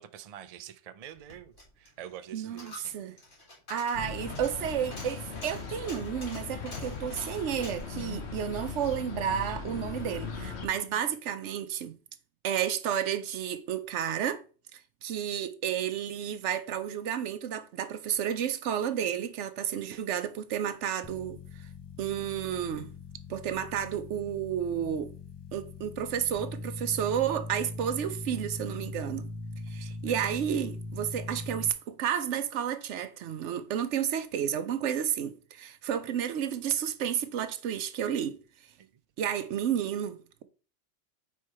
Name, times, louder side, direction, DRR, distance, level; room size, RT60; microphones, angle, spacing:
voice 1, 0.0-3.0 10.7-11.0 29.8-30.4 38.8-38.9, right 10 dB, 60° right, 0.4 m, -47 dB
Coin (dropping), 1.1-9.5 9.8-9.9, left 1 dB, 85° left, 2.5 m, -48 dB
voice 2, 2.3-3.2 3.7-12.0 12.4-14.4 14.7-21.4 22.0-22.9 23.3-25.1 25.5-29.3 29.7-38.4 39.2-40.4, right 9 dB, 75° right, 1.0 m, -31 dB
sound 1, 3.9-10.7, left 5 dB, 65° left, 1.2 m, -39 dB
sound 2, 21.0-31.7, left 2 dB, 35° left, 0.4 m, -41 dB
4.6 x 4.5 x 4.7 m
omnidirectional pair, 1.2 m